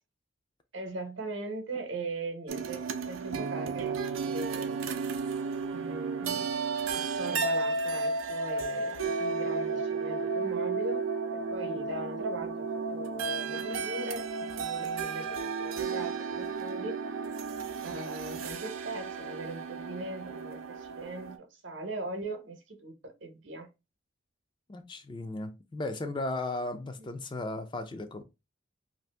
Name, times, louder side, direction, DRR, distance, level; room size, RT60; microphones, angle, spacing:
voice 1, 0.7-4.8 5.7-6.5 6.9-11.0 11.3-17.0 17.8-23.7 27.0-27.1, right 2 dB, 70° right, 0.8 m, -40 dB
sound 1, 2.5-21.4, right 4 dB, 90° right, 0.4 m, -33 dB
voice 2, 24.7-28.2, left 2 dB, 25° left, 0.3 m, -36 dB
2.6 x 2.4 x 3.3 m
head